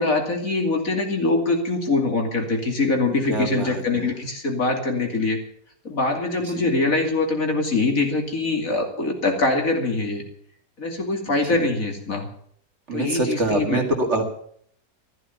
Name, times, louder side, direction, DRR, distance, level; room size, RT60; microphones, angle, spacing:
voice 1, 0.0-5.4 5.8-10.2 10.8-12.3 12.9-13.8, left 3 dB, 55° left, 2 dB, 3.0 m, -23 dB
voice 2, 3.1-4.1 6.5-6.7 11.4-11.6 12.9-14.2, right 2 dB, 45° right, 3 dB, 2.2 m, -25 dB
14.0 x 12.0 x 6.9 m, 0.63 s
omnidirectional pair, 1.8 m